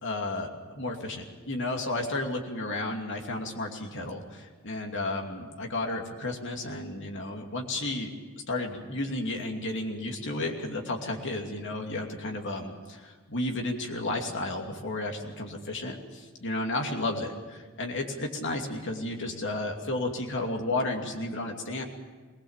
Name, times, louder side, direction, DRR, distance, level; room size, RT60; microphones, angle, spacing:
voice 1, 0.0-8.1 8.5-21.8, left 2 dB, 60° left, 2 dB, 2.6 m, -32 dB
21.0 x 19.0 x 7.4 m, 1.4 s
head